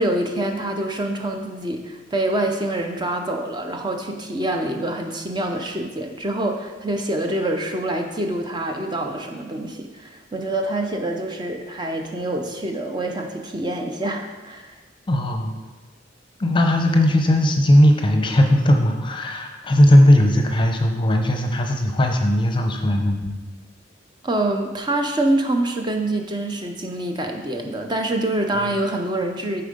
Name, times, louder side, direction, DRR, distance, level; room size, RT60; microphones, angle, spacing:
voice 1, 0.0-14.7 24.2-29.6, right 1 dB, 25° right, 3 dB, 0.6 m, -25 dB
voice 2, 15.1-15.5 16.4-23.4, left 1 dB, 25° left, 3 dB, 0.7 m, -17 dB
8.7 x 4.5 x 5.1 m, 1.2 s
head